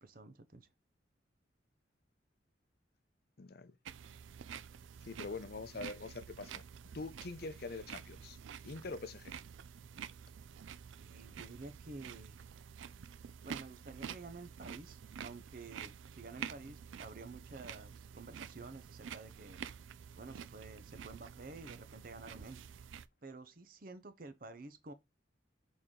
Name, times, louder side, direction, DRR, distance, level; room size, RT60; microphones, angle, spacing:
voice 1, 0.0-0.7 11.0-12.4 13.4-19.6 20.2-22.6 23.2-24.9, right 3 dB, 45° right, 0.7 m, -51 dB
voice 2, 3.4-3.8 5.0-6.7 6.9-8.4 8.6-9.4, left 3 dB, 55° left, 0.6 m, -44 dB
sound 1, 3.9-23.1, right 7 dB, 85° right, 0.4 m, -49 dB
6.3 x 4.0 x 3.7 m
head